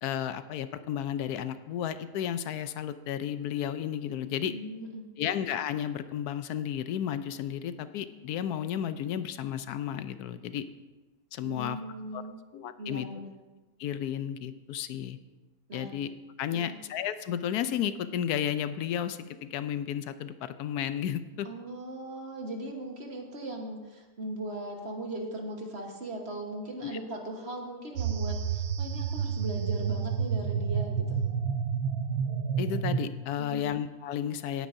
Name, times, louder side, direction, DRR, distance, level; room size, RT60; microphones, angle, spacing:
voice 1, 0.0-4.5 5.2-10.6 11.3-11.8 12.1-12.2 12.5-13.1 13.8-15.2 15.7-16.1 16.4-21.5 26.8-27.0 32.6-34.7, left 10 dB, 80° left, 12 dB, 1.1 m, -33 dB
voice 2, 4.4-5.0 11.4-12.4 12.8-13.3 15.7-15.9 16.5-16.8 21.4-31.3 33.4-33.7, right 1 dB, 45° right, 1 dB, 1.6 m, -39 dB
sound 1, 28.0-33.1, right 7 dB, 80° right, 1.3 m, -30 dB
17.5 x 9.3 x 2.7 m, 1.2 s
omnidirectional pair, 1.6 m